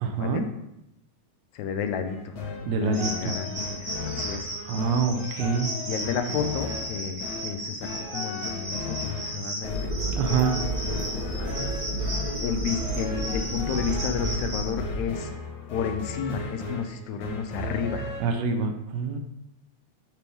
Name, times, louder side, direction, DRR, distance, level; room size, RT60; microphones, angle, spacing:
voice 1, 0.0-0.5 2.7-3.3 4.7-5.7 10.1-10.6 18.2-19.2, right 5 dB, 75° right, 5 dB, 1.7 m, -26 dB
voice 2, 1.5-2.3 2.6-4.5 5.1-5.6 5.9-9.0 9.3-9.9 12.4-15.3 15.7-18.1, left 7 dB, 80° left, 7 dB, 1.9 m, -32 dB
sound 1, 2.1-18.2, left 3 dB, 60° left, 1.1 m, -36 dB
sound 2, 2.9-14.7, right 1 dB, 55° right, 3.3 m, -35 dB
sound 3, 9.6-15.0, equal, 25° right, 1.2 m, -31 dB
6.9 x 3.5 x 4.5 m, 0.84 s
omnidirectional pair, 3.3 m